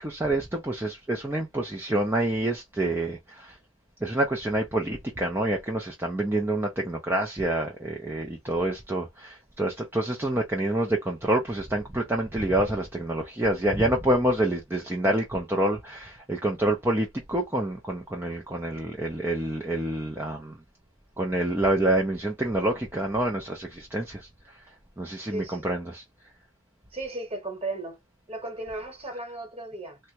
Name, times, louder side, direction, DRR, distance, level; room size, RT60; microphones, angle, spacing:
voice 1, 0.0-3.6 4.0-20.6 21.2-24.6 25.0-26.0, right 1 dB, 10° right, 0.4 m, -27 dB
voice 2, 25.3-25.6 26.9-28.0 28.3-30.0, right 2 dB, 30° right, 1.1 m, -35 dB
3.4 x 2.1 x 2.8 m
head